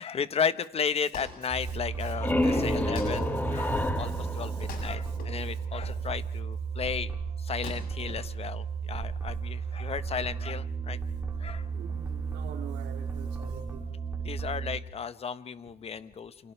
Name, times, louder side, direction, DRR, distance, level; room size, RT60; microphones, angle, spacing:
voice 1, 0.0-7.1 7.4-11.0 11.4-11.7 14.2-16.5, left 6 dB, 35° left, 13 dB, 1.3 m, -34 dB
Wood, 0.7-9.1, left 5 dB, 60° left, 7.6 m, -47 dB
sound 1, 1.5-14.8, right 6 dB, 10° right, 6.3 m, -34 dB
sound 2, 1.8-5.5, left 1 dB, 10° left, 2.3 m, -30 dB
voice 2, 3.6-4.6 11.7-13.8, right 10 dB, 75° right, 4 dB, 2.5 m, -46 dB
29.0 x 28.5 x 3.4 m, 0.78 s
cardioid pair, 110°, 17 cm